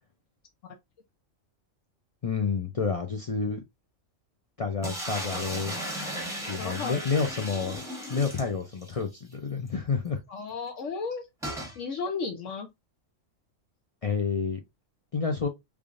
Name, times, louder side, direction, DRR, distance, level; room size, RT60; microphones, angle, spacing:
voice 1, 2.2-3.6 4.6-5.8 6.3-7.8 8.1-10.2 14.0-14.6 15.1-15.5, left 5 dB, 45° left, 0.4 m, -29 dB
sound 1, 4.8-9.0 9.3-9.4 9.7-9.8 11.4-11.8, equal, 5° right, 1.1 m, -36 dB
voice 2, 6.6-7.1 10.3-11.2 11.8-12.7, left 5 dB, 70° left, 1.0 m, -33 dB
3.4 x 3.3 x 2.5 m
omnidirectional pair, 1.3 m